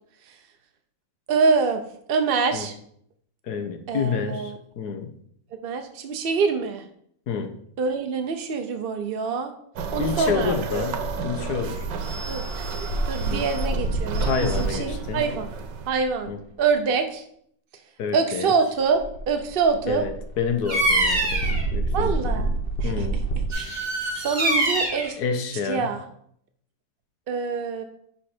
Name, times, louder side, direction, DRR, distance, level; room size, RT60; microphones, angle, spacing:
voice 1, 1.3-1.8 2.1-2.7 3.9-4.6 5.6-6.8 7.8-9.5 9.9-10.9 12.3-12.4 13.1-15.5 15.9-16.3 16.6-17.2 18.1-20.0 21.9-22.5 22.8-23.1 23.5-23.7 24.2-25.2 25.7-26.0 27.3-27.8, right 5 dB, 60° right, 6 dB, 0.6 m, -25 dB
voice 2, 3.4-5.1 7.3-7.6 10.0-11.8 13.3-13.5 14.2-15.3 16.3-16.4 18.0-18.5 19.9-22.3 22.8-23.2 25.2-25.9, left 6 dB, 65° left, 7 dB, 1.4 m, -29 dB
sound 1, 9.8-16.4 18.7-23.5, right 2 dB, 85° left, 2.1 m, -29 dB
sound 2, 9.8-15.9, right 7 dB, 80° right, 1.5 m, -34 dB
Bird vocalization bird call bird song, 20.6-21.6 23.5-25.1, right 1 dB, 25° right, 1.4 m, -24 dB
11.0 x 4.4 x 4.4 m, 0.66 s
omnidirectional pair, 1.9 m